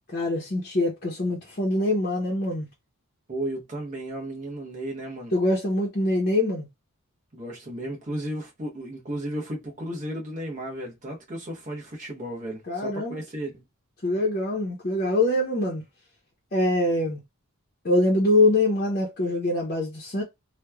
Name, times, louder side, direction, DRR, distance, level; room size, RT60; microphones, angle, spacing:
voice 1, 0.1-2.7 5.3-6.7 12.7-13.2 14.0-15.8 16.5-17.2 17.8-20.2, left 2 dB, 40° left, 0.7 m, -24 dB
voice 2, 3.3-5.3 7.3-13.6, right 1 dB, 35° right, 0.9 m, -34 dB
3.0 x 2.2 x 2.3 m
head